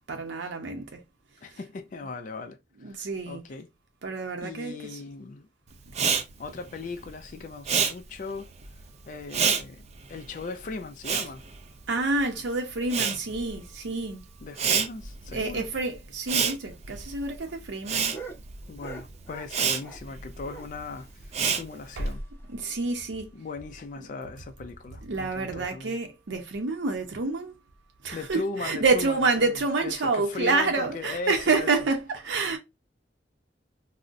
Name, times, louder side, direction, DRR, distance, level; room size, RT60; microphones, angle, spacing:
voice 1, 0.1-1.0 2.8-3.4 4.0-5.0 6.0-6.1 11.9-14.2 15.3-18.2 22.0-22.1 22.5-23.3 24.0-24.1 25.0-27.6 28.0-32.6, right 3 dB, 90° right, 0.6 m, -28 dB
voice 2, 1.4-3.7 4.4-5.5 6.4-8.5 9.1-9.8 10.1-11.4 14.4-15.7 18.7-22.2 23.3-26.0 28.1-29.5 29.8-31.7, left 3 dB, 45° left, 0.3 m, -38 dB
Respiratory sounds, 5.9-12.4 12.6-22.1, right 6 dB, 40° right, 0.4 m, -29 dB
sound 1, 16.7-20.1 20.4-22.4 22.7-22.8 23.1-23.2 23.6-23.7 24.3-24.6 25.4-25.5, right 3 dB, 15° left, 0.8 m, -46 dB
3.7 x 2.0 x 2.5 m
head